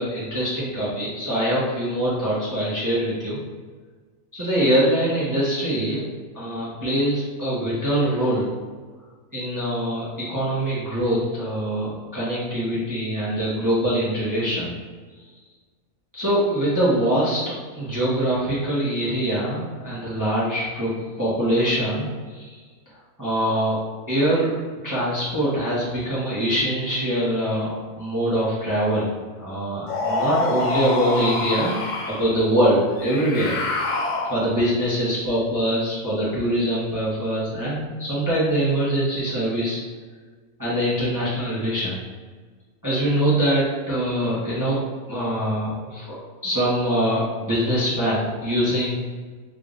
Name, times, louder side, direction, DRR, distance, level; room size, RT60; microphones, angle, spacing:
voice 1, 0.0-3.4 4.3-6.0 6.3-8.6 9.3-14.7 16.1-17.4 17.8-20.9 21.2-22.6 23.2-23.8 24.1-24.6 24.8-29.1 29.4-33.5 34.2-39.8 40.6-42.0 42.8-44.8 45.1-46.1 46.4-48.9, right 1 dB, 15° right, -9 dB, 0.9 m, -23 dB
sound 1, 29.9-32.3 33.0-34.7, left 2 dB, 60° left, 0.5 m, -26 dB
3.6 x 2.5 x 3.7 m, 1.4 s
omnidirectional pair, 1.4 m